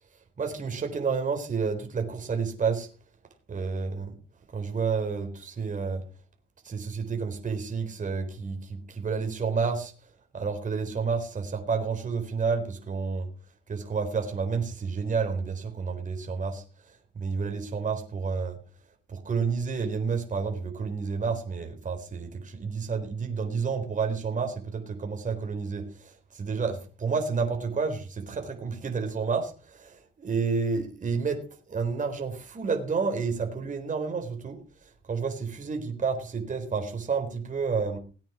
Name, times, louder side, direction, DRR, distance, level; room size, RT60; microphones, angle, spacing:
voice 1, 0.4-2.9 3.5-4.1 4.5-6.0 6.6-9.9 10.3-13.3 13.7-16.6 17.2-18.6 19.1-34.6 35.1-38.0, right 5 dB, 40° right, 4 dB, 4.0 m, -30 dB
18.5 x 9.1 x 6.1 m, 0.37 s
cardioid pair, 90°, 20 cm